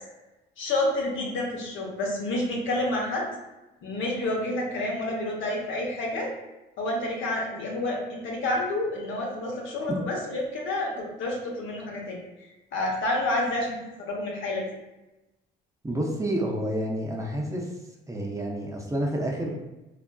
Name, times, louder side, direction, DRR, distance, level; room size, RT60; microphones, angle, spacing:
voice 1, 0.6-3.3 3.8-6.3 6.8-12.2 12.7-14.7, left 1 dB, 75° left, -1 dB, 0.8 m, -29 dB
voice 2, 15.8-17.7 18.1-19.6, right 1 dB, 15° right, -1 dB, 0.5 m, -29 dB
3.3 x 2.4 x 2.2 m, 1.0 s
cardioid pair, 90°, 20 cm